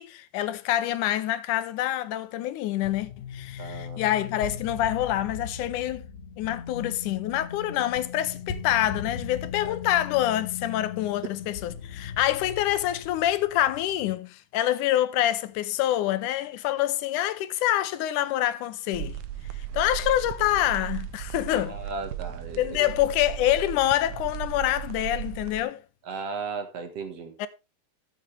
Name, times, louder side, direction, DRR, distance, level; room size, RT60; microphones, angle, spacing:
voice 1, 0.0-6.1 6.4-19.2 19.7-21.8 22.6-25.8 27.4-27.5, left 13 dB, 90° left, 2.3 m, -26 dB
sound 1, 2.8-14.2, left 7 dB, 65° left, 2.8 m, -39 dB
voice 2, 3.6-4.1 9.6-9.7 21.5-22.9 26.1-27.3, right 4 dB, 55° right, 2.5 m, -36 dB
sound 2, 18.9-25.6, right 11 dB, 75° right, 2.1 m, -36 dB
13.5 x 8.0 x 3.4 m
omnidirectional pair, 3.5 m